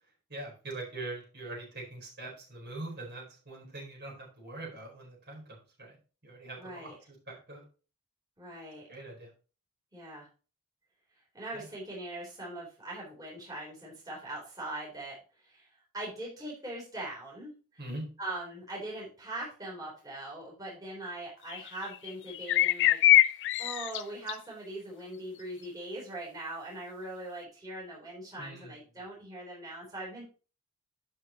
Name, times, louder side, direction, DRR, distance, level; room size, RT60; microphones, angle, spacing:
voice 1, 0.3-6.0 6.2-7.6 8.9-9.3 11.5-11.7 17.8-18.1 28.4-28.8, right 2 dB, 50° right, -1 dB, 4.3 m, -43 dB
voice 2, 6.6-7.0 8.4-8.9 9.9-10.3 11.3-17.5 18.2-23.3 23.6-30.2, right 1 dB, 15° right, -4 dB, 3.6 m, -41 dB
sound 1, 21.5-21.8 22.1-24.0 24.3-24.4, left 13 dB, 55° left, 0.4 m, -23 dB
11.0 x 6.5 x 3.0 m, 0.35 s
head